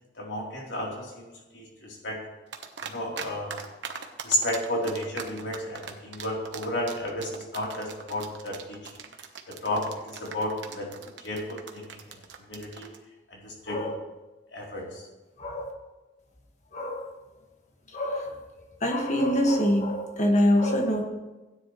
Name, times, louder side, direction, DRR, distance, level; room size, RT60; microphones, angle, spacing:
voice 1, 0.2-1.3 1.5-2.2 2.8-3.5 4.2-8.8 9.5-12.0 12.5-12.9 13.3-13.9 14.5-15.0, left 1 dB, 85° left, -3 dB, 3.6 m, -32 dB
sound 1, 2.5-3.3 3.5-13.0, right 6 dB, 90° right, 1.1 m, -39 dB
voice 2, 15.4-15.7 16.7-17.1 17.9-18.4 18.8-21.0, equal, 40° left, 1 dB, 1.8 m, -25 dB
16.0 x 9.8 x 3.2 m, 1.1 s
head